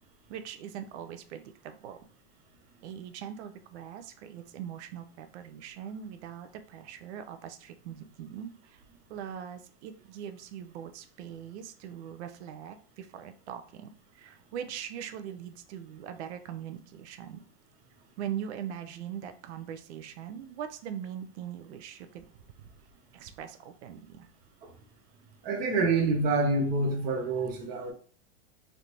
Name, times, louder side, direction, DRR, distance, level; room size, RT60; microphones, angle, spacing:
voice 1, 0.3-2.0 2.8-8.8 9.1-17.4 18.2-22.3 22.6-22.7 23.1-24.3, right 9 dB, 80° right, 0.5 m, -41 dB
voice 2, 25.4-27.9, right 3 dB, 25° right, 0.5 m, -27 dB
3.2 x 2.6 x 2.8 m
supercardioid pair, 155°, 34 cm